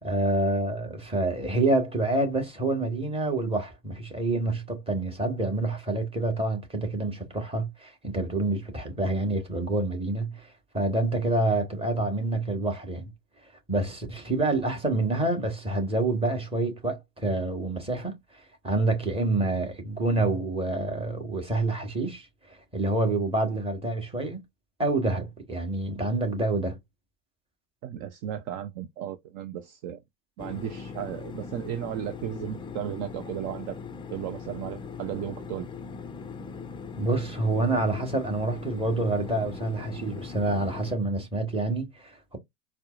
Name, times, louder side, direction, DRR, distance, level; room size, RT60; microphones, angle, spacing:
voice 1, 0.0-13.1 13.7-18.2 18.6-24.4 24.8-26.8 37.0-42.4, right 2 dB, 15° right, 1.6 m, -27 dB
voice 2, 27.8-30.0 30.4-33.8 34.1-35.7, right 10 dB, 45° right, 0.6 m, -35 dB
sound 1, 30.4-40.9, left 5 dB, 15° left, 0.5 m, -40 dB
4.3 x 2.0 x 2.5 m
hypercardioid pair, 85°, 40 cm